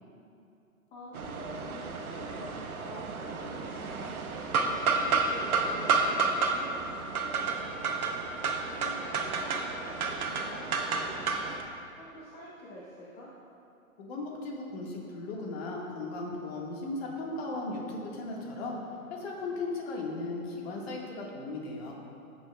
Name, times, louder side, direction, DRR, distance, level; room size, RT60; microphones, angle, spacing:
voice 1, 0.9-8.2 8.8-13.3, equal, 20° left, -6 dB, 0.9 m, -47 dB
sound 1, 1.1-11.6, right 4 dB, 75° right, 0.9 m, -31 dB
voice 2, 14.0-18.8 19.1-21.9, left 2 dB, 45° left, -2 dB, 1.6 m, -36 dB
14.5 x 6.1 x 2.3 m, 2.7 s
hypercardioid pair, 125°, 43 cm